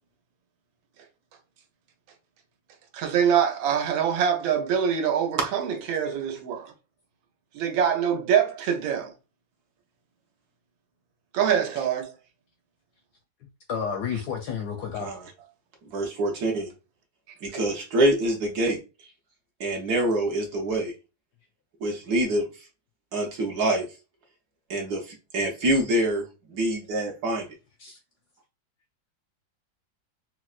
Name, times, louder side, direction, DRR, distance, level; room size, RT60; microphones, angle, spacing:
voice 1, 2.9-6.7 7.5-9.1 11.3-12.1, right 8 dB, 85° right, 1.4 m, -24 dB
voice 2, 13.7-15.1 27.8-28.0, left 7 dB, 70° left, 1.0 m, -31 dB
voice 3, 15.9-16.7 17.4-18.8 19.6-20.9 21.8-22.5 23.1-23.9 24.7-26.2 26.5-27.5, right 1 dB, 65° right, 1.0 m, -25 dB
4.2 x 2.1 x 2.3 m
omnidirectional pair, 2.2 m